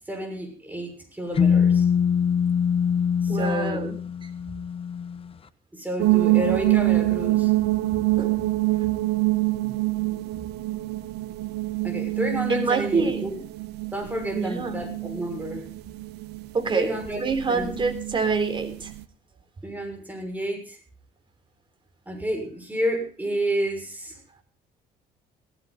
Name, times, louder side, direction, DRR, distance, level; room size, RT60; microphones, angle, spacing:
voice 1, 0.1-1.8 3.2-3.9 5.7-7.5 11.8-13.4 13.9-15.6 16.7-17.2 17.5-17.7 19.6-20.8 22.1-24.2, right 1 dB, 10° right, 3 dB, 6.3 m, -30 dB
sound 1, 1.4-5.2, left 7 dB, 35° left, 1.2 m, -23 dB
voice 2, 3.3-4.0 8.2-8.3 12.5-13.2 14.3-14.8 16.5-18.9, right 4 dB, 30° right, 6 dB, 3.6 m, -26 dB
sound 2, 6.0-19.0, right 19 dB, 80° right, 1.1 m, -26 dB
18.0 x 15.5 x 4.1 m, 0.37 s
cardioid pair, 110°, 17 cm